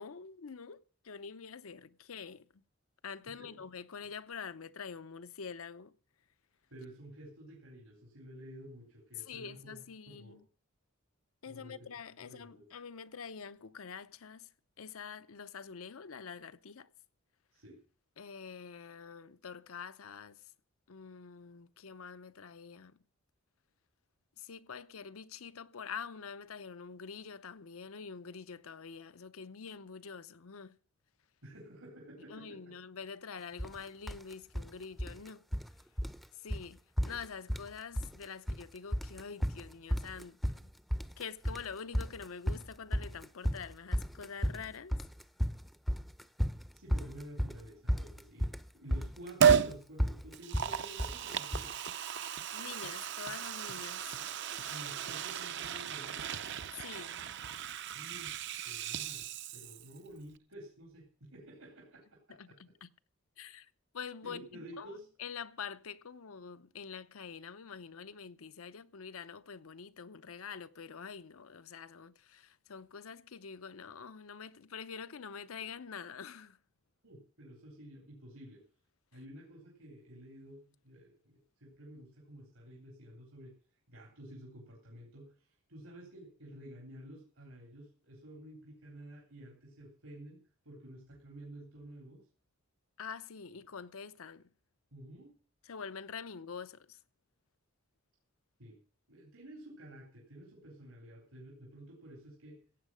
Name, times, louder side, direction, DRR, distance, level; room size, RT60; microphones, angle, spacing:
voice 1, 0.0-2.6 3.0-5.9 9.2-10.4 11.4-14.5 14.8-16.9 18.2-20.4 20.9-23.0 24.4-30.8 32.3-35.4 36.3-40.7 41.2-44.9 52.5-54.1 56.7-57.3 62.3-62.9 63.4-76.6 93.0-94.5 95.6-97.0, left 6 dB, 80° left, 0.7 m, -46 dB
voice 2, 3.3-3.6 6.7-10.4 11.5-11.8 12.2-12.7 17.5-17.8 31.4-32.6 46.7-51.8 54.7-56.3 57.9-58.4 58.7-59.3 59.5-62.0 62.5-62.6 64.2-65.1 77.0-78.6 79.1-83.5 83.9-90.4 90.7-92.2 94.9-95.3 98.6-98.8 99.1-102.6, right 1 dB, 85° right, 3.5 m, -51 dB
sound 1, 33.6-33.8 34.1-34.7 35.0-35.7 36.0-36.2 36.5-36.7 37.0-37.7 38.0-38.6 38.9-51.7, equal, ahead, 0.5 m, -34 dB
Liquid, 49.4-49.7 50.3-60.0 60.3-60.4, right 8 dB, 55° right, 0.6 m, -33 dB
15.5 x 8.4 x 6.2 m
head